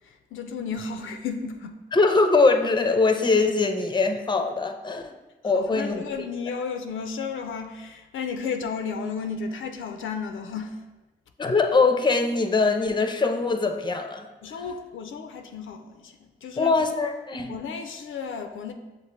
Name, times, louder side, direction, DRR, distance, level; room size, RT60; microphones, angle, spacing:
voice 1, 0.0-1.8 5.4-10.8 14.4-16.8 17.5-18.7, left 5 dB, 80° left, 6 dB, 0.4 m, -33 dB
voice 2, 1.9-5.1 5.4-6.3 11.4-14.3 16.6-17.5, left 3 dB, 20° left, 6 dB, 0.5 m, -22 dB
6.5 x 2.5 x 3.0 m, 1.1 s
supercardioid pair, 40°, 20 cm